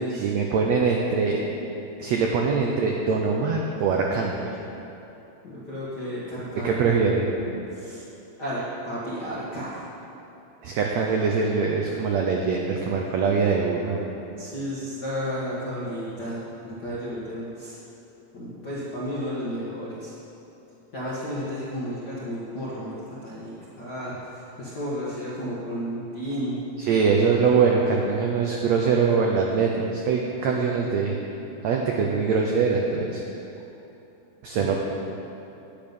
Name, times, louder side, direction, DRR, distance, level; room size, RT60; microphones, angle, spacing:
voice 1, 0.1-1.4 2.0-4.4 6.6-7.3 10.6-14.0 26.8-31.2 31.6-33.2 34.4-34.8, right 5 dB, 85° right, 0 dB, 1.5 m, -23 dB
voice 2, 5.4-6.7 7.7-8.0 8.4-9.8 14.4-17.8 18.3-20.1 20.9-23.0 23.2-26.6 30.4-30.6, equal, 55° left, -8 dB, 1.1 m, -32 dB
10.0 x 9.0 x 5.4 m, 3.0 s
omnidirectional pair, 4.0 m